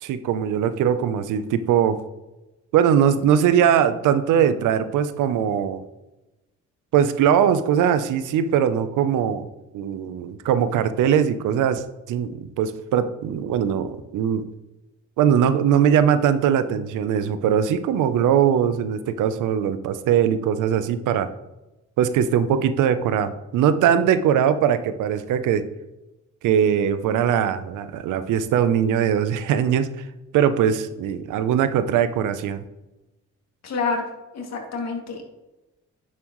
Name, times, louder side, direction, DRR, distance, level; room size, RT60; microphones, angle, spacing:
voice 1, 0.0-2.0 2.7-5.8 6.9-9.5 9.7-14.5 15.2-21.3 22.0-25.6 26.4-29.9 30.3-32.6, right 8 dB, 85° right, 12 dB, 0.7 m, -21 dB
voice 2, 33.6-34.0 34.3-35.2, left 4 dB, 60° left, 1 dB, 2.4 m, -27 dB
10.0 x 7.4 x 3.1 m, 1.0 s
cardioid pair, 90°, 30 cm